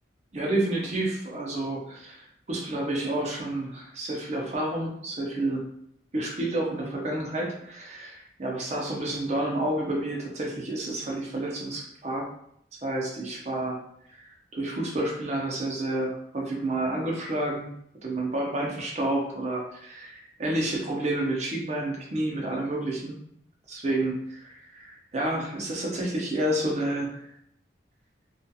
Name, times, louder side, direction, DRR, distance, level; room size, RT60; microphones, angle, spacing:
voice 1, 0.3-5.6 6.1-12.3 12.8-13.8 14.1-17.7 18.0-23.2 23.7-27.2, right 1 dB, 35° right, -2 dB, 0.6 m, -30 dB
2.7 x 2.4 x 2.3 m, 0.70 s
head